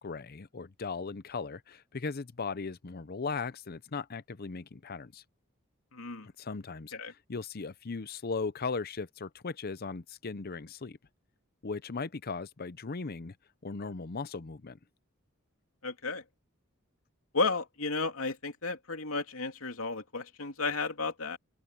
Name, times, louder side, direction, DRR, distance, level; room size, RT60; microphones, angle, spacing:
voice 1, 0.0-5.2 6.4-11.0 11.6-13.4 13.6-14.8, left 4 dB, 50° left, 0.7 m, -38 dB
voice 2, 5.9-6.3 6.9-7.1 15.8-16.2 17.3-21.4, left 3 dB, 85° left, 3.0 m, -33 dB
head